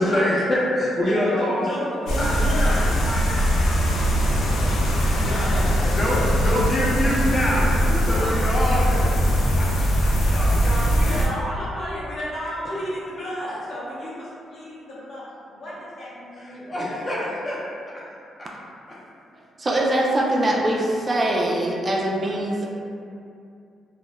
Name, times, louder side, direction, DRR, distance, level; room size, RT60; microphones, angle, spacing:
voice 1, 0.0-1.6 2.2-2.3 2.6-2.8 3.0-4.0 4.3-4.5 4.8-9.7 10.0-10.2 16.4-17.6 17.9-18.0 18.4-18.5, left 1 dB, 30° left, -6 dB, 0.6 m, -26 dB
voice 2, 1.0-2.9 4.0-6.6 8.0-8.4 10.3-16.9, equal, 60° left, -9 dB, 0.8 m, -32 dB
sound 1, 2.1-11.3, equal, 80° left, 0.4 m, -21 dB
voice 3, 19.6-22.7, right 1 dB, 30° right, -2 dB, 0.3 m, -22 dB
2.1 x 2.1 x 2.9 m, 2.5 s
cardioid pair, 80°, 0 cm